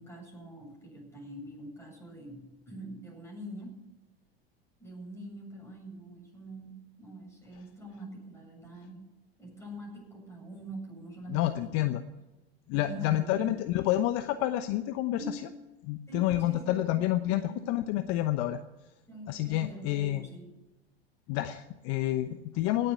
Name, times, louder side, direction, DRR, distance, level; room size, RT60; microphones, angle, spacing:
voice 1, 0.0-3.8 4.8-9.0 9.4-11.9 12.7-13.7 15.2-15.5 16.1-17.1 17.3-17.8 19.1-20.5 22.5-22.8, right 1 dB, 10° left, -1 dB, 7.9 m, -44 dB
voice 2, 11.3-12.0 12.7-15.2 15.8-18.6 19.3-20.2 21.3-22.9, left 14 dB, 50° left, 10 dB, 0.9 m, -29 dB
18.0 x 8.0 x 9.5 m, 1.1 s
hypercardioid pair, 85°, 32 cm